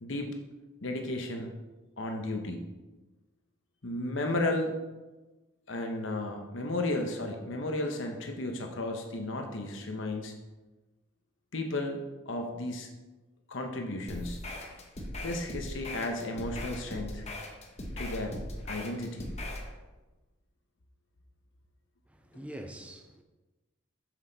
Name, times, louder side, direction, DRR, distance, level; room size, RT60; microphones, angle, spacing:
voice 1, 0.0-0.3 0.8-1.5 2.0-2.6 3.8-4.7 5.7-10.3 11.5-12.9 13.5-14.4 15.2-17.2 18.0-18.4 18.7-19.3, left 2 dB, 65° left, 0.9 m, -34 dB
sound 1, 14.1-19.7, left 1 dB, 30° left, 1.0 m, -39 dB
voice 2, 22.1-23.2, right 1 dB, 5° right, 0.4 m, -44 dB
7.4 x 6.4 x 4.0 m
head